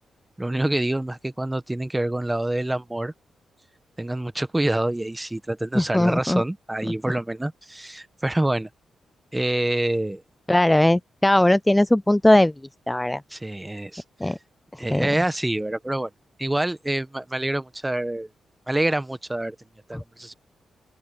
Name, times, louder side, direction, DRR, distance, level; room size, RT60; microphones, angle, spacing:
voice 1, 0.4-3.1 4.0-8.7 9.3-10.2 13.3-14.3 14.8-16.1 16.4-18.3 18.7-19.5 19.9-20.3, right 1 dB, 15° right, 1.2 m, -26 dB
voice 2, 5.7-6.4 10.5-12.5 12.9-13.2 14.2-14.4 14.7-15.1 19.9-20.0, left 1 dB, 10° left, 0.3 m, -19 dB
open air
cardioid pair, 75°, 0 cm